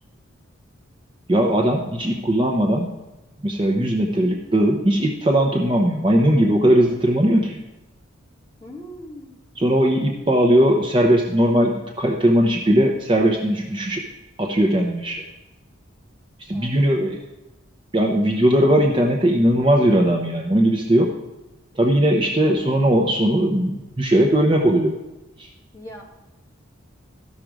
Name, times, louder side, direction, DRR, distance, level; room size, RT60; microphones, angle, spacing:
voice 1, 1.3-2.9 3.4-7.6 9.6-14.0 14.4-15.2 16.5-17.2 17.9-21.1 21.8-24.9 25.4-25.5, right 1 dB, 25° right, 1 dB, 0.8 m, -19 dB
voice 2, 8.6-9.4 16.5-16.7 22.5-22.8 25.7-26.0, equal, 15° left, -3 dB, 1.8 m, -40 dB
13.0 x 6.1 x 5.0 m, 1.0 s
head